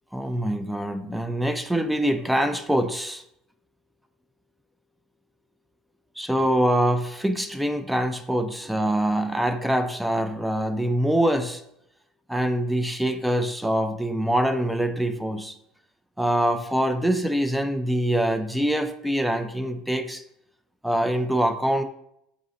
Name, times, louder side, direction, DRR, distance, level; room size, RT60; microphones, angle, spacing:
voice 1, 0.1-3.2 6.2-11.6 12.3-15.5 16.2-20.2 20.8-21.8, right 1 dB, 5° right, 8 dB, 0.3 m, -24 dB
4.0 x 2.7 x 3.7 m, 0.75 s
supercardioid pair, 105°, 0 cm